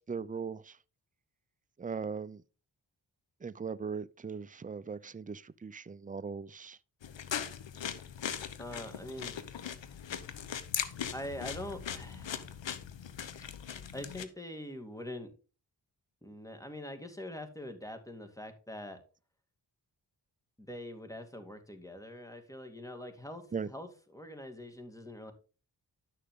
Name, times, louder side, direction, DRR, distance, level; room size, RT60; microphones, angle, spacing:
voice 1, 0.1-0.8 1.8-2.4 3.4-6.8 23.5-23.7, right 5 dB, 20° right, 0.6 m, -39 dB
sound 1, 7.0-14.3, left 8 dB, 80° left, 1.0 m, -39 dB
voice 2, 8.6-9.4 11.1-12.5 13.9-15.3 16.2-19.0 20.6-25.3, left 1 dB, 5° left, 2.3 m, -44 dB
11.5 x 6.6 x 3.7 m
cardioid pair, 45°, 45 cm